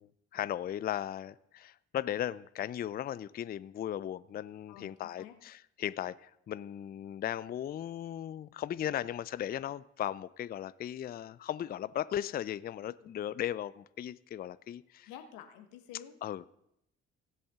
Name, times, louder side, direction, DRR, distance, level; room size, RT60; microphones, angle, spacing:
voice 1, 0.0-15.1 16.2-16.5, left 11 dB, 30° left, 17 dB, 0.4 m, -37 dB
voice 2, 4.7-5.3 13.0-13.1 15.1-16.2, left 9 dB, 75° left, 7 dB, 1.1 m, -50 dB
17.5 x 7.8 x 3.6 m, 0.77 s
hypercardioid pair, 55°, 32 cm